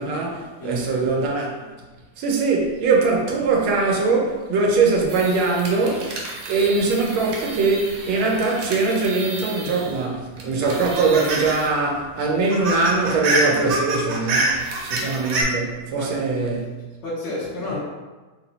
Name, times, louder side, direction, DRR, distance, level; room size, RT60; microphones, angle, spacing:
voice 1, 0.0-1.6 2.2-6.1 6.5-16.7, right 3 dB, 90° right, 1.5 m, -22 dB
voice 2, 0.6-1.3 16.0-16.6 17.0-17.8, left 1 dB, 80° left, 1.8 m, -31 dB
sound 1, 5.1-10.0 10.4-11.7 12.0-12.1 12.4-15.4, right 2 dB, 65° right, 1.3 m, -28 dB
4.3 x 2.0 x 4.0 m
omnidirectional pair, 2.2 m